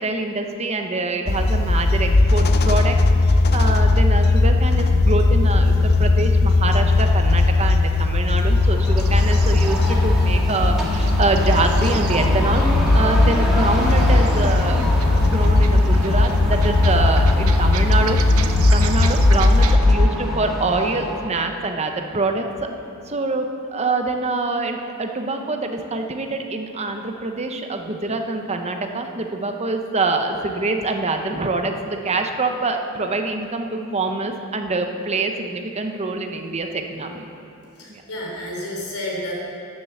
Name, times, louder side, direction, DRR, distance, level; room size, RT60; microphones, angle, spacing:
voice 1, 0.0-3.0 3.2-12.6 12.9-14.8 15.1-22.7 23.1-37.2 37.9-38.0, right 3 dB, 30° right, 5 dB, 0.8 m, -25 dB
sound 1, 1.3-20.1, left 2 dB, 50° left, 0.6 m, -17 dB
sound 2, 8.5-21.3, equal, ahead, 1.7 m, -28 dB
sound 3, 9.0-19.8, right 6 dB, 80° right, 0.7 m, -35 dB
voice 2, 37.8-39.3, left 1 dB, 85° left, -3 dB, 3.4 m, -31 dB
12.0 x 7.6 x 7.0 m, 2.6 s
head